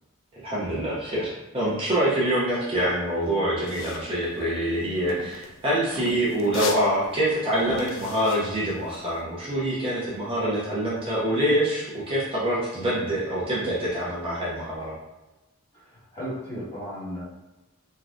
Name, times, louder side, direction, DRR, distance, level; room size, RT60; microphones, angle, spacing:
voice 1, 0.4-14.9, right 1 dB, 25° right, -7 dB, 0.6 m, -25 dB
sound 1, 3.6-9.2, left 5 dB, 60° left, 0.3 m, -38 dB
voice 2, 15.7-17.2, equal, 30° left, -9 dB, 1.2 m, -35 dB
3.2 x 2.3 x 2.5 m, 1.0 s
head